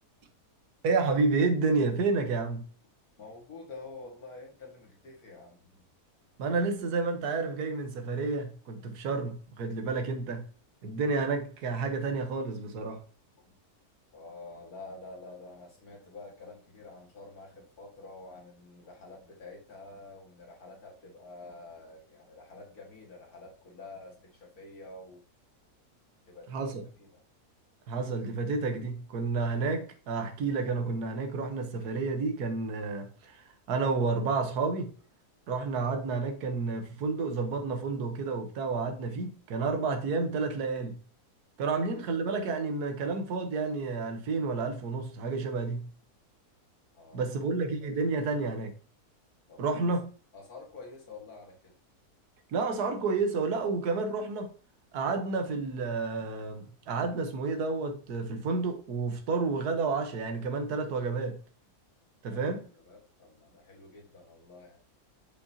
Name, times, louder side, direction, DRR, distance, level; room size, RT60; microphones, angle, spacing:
voice 1, 0.8-2.7 6.4-10.5 10.8-13.0 26.5-26.8 27.9-34.9 35.5-41.0 41.6-45.9 47.1-48.7 49.6-50.0 52.5-54.5 54.9-61.4 62.2-62.7, right 4 dB, 80° right, 1.5 m, -30 dB
voice 2, 3.2-5.8 13.4-13.5 14.1-25.2 26.3-26.7 27.0-27.2 46.9-47.3 49.5-49.8 50.3-51.7 62.3-62.5 62.8-64.8, left 3 dB, 70° left, 2.2 m, -48 dB
6.7 x 5.4 x 2.7 m
omnidirectional pair, 1.6 m